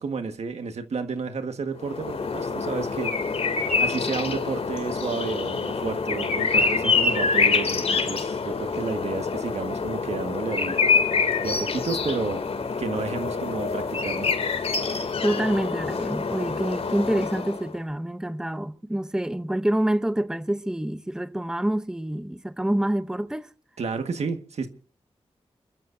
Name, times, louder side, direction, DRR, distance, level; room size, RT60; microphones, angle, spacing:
voice 1, 0.0-3.1 3.8-12.4 12.8-14.3 23.8-24.7, right 5 dB, 85° right, 1.6 m, -31 dB
sound 1, 1.8-17.7, left 4 dB, 75° left, 2.6 m, -26 dB
voice 2, 15.2-23.5, right 1 dB, 5° right, 0.7 m, -27 dB
29.0 x 13.0 x 2.7 m
wide cardioid pair, 90°, 11 cm